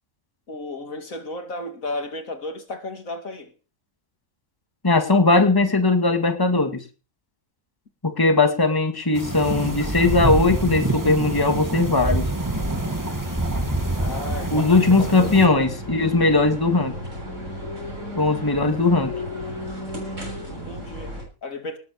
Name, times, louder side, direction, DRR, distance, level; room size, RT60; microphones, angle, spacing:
voice 1, 0.5-3.5 13.9-15.3 20.5-21.8, left 2 dB, 75° left, 2.9 m, -34 dB
voice 2, 4.8-6.8 8.0-12.3 14.5-16.9 18.2-19.1, left 3 dB, 15° left, 2.0 m, -19 dB
sound 1, 9.1-15.5, right 2 dB, 15° right, 2.0 m, -26 dB
sound 2, 12.4-21.2, equal, 65° right, 7.6 m, -34 dB
19.0 x 7.9 x 6.8 m
omnidirectional pair, 1.4 m